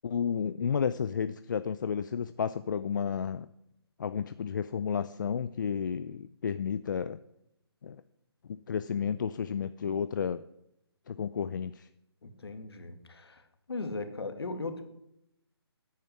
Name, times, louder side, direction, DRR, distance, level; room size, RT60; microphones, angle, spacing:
voice 1, 0.0-3.5 4.0-7.2 7.8-8.0 8.5-10.4 11.1-11.9, left 7 dB, 45° left, 13 dB, 0.5 m, -32 dB
voice 2, 12.2-13.4 13.7-14.8, left 3 dB, 70° left, 8 dB, 2.3 m, -38 dB
10.5 x 9.5 x 9.6 m, 0.81 s
figure-of-eight pair, 150°, 14 cm